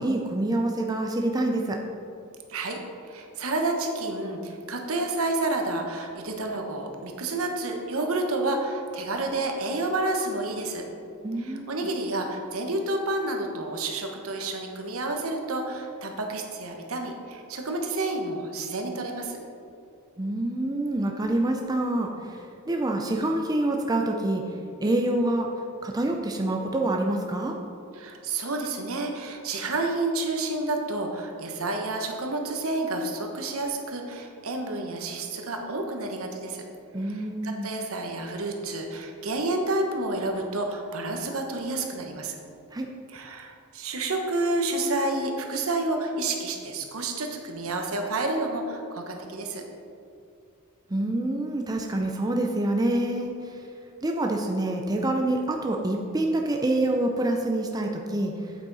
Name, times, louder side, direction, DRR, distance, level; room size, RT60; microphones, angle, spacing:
voice 1, 0.0-1.8 11.2-11.9 20.2-24.4 24.8-25.5 25.8-27.6 36.9-37.7 42.7-42.9 50.9-53.6 54.0-58.3, right 1 dB, 15° right, 2 dB, 0.5 m, -26 dB
voice 2, 3.1-10.8 11.4-19.4 28.0-36.6 37.0-42.3 43.1-49.6, right 2 dB, 65° right, 3 dB, 1.1 m, -30 dB
8.4 x 8.2 x 4.1 m, 2.5 s
head